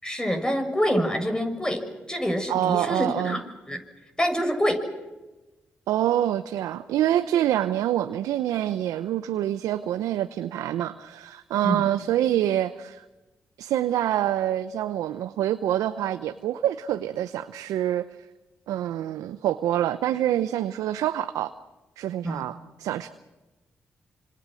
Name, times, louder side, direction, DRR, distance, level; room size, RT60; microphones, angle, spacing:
voice 1, 0.0-3.8 4.2-4.9 11.6-11.9 22.2-22.5, equal, 15° left, 6 dB, 6.8 m, -26 dB
voice 2, 2.5-3.4 5.9-13.0 13.6-18.0 18.7-21.5 22.0-23.1, right 12 dB, 80° right, 10 dB, 0.8 m, -26 dB
28.0 x 26.0 x 6.4 m, 1.1 s
hypercardioid pair, 40°, 6 cm